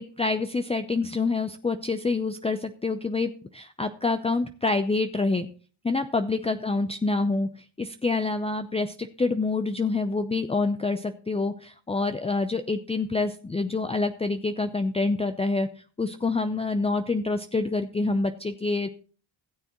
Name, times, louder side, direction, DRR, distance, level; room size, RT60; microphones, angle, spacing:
voice 1, 0.0-5.5 5.8-18.9, left 3 dB, 15° left, 9 dB, 0.6 m, -27 dB
16.0 x 6.9 x 3.0 m, 0.41 s
cardioid pair, 70°, 46 cm